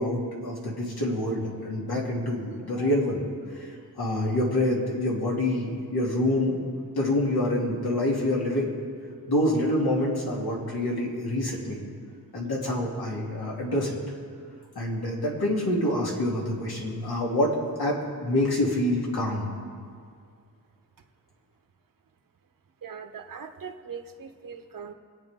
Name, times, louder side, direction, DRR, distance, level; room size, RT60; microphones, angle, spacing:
voice 1, 0.0-3.2 3.5-6.6 6.9-8.7 9.3-11.8 12.3-14.0 14.7-19.5, left 1 dB, 75° left, -3 dB, 2.9 m, -26 dB
voice 2, 22.8-24.9, right 6 dB, 60° right, 6 dB, 1.1 m, -40 dB
25.5 x 8.8 x 3.7 m, 2.2 s
wide cardioid pair, 130°, 37 cm